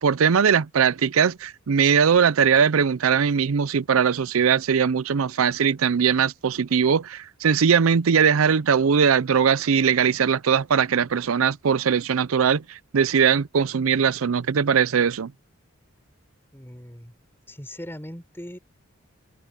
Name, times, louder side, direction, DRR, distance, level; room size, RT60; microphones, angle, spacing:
voice 1, 0.0-15.3, right 7 dB, 75° right, 0.5 m, -20 dB
voice 2, 16.5-17.1 17.5-18.6, equal, 10° left, 6.7 m, -39 dB
open air
head